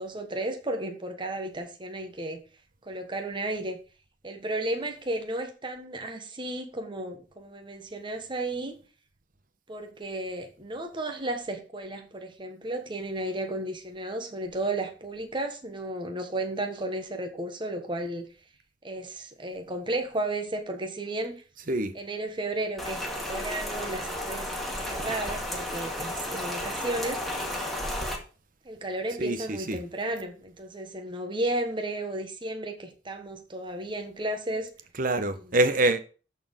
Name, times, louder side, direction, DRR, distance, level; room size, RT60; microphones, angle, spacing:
voice 1, 0.0-2.4 2.9-3.8 4.2-8.8 9.7-18.3 18.8-21.3 21.9-27.2 28.6-34.7, right 1 dB, 25° right, 1.3 m, -33 dB
Rain, 22.8-28.2, left 1 dB, ahead, 2.0 m, -33 dB
voice 2, 29.2-29.8 35.0-36.0, right 2 dB, 50° right, 1.0 m, -25 dB
13.5 x 4.5 x 5.2 m
head